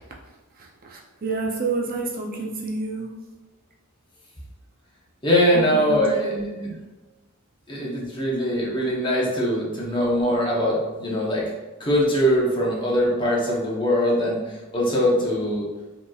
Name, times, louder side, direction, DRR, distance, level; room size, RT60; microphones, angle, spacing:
voice 1, 0.8-3.1 5.5-5.6 5.9-6.8, right 3 dB, 40° right, -1 dB, 0.5 m, -29 dB
voice 2, 5.2-6.4 6.6-6.7 7.7-11.5 11.8-15.7, equal, 20° left, -4 dB, 0.9 m, -22 dB
5.0 x 3.0 x 2.3 m, 1.1 s
head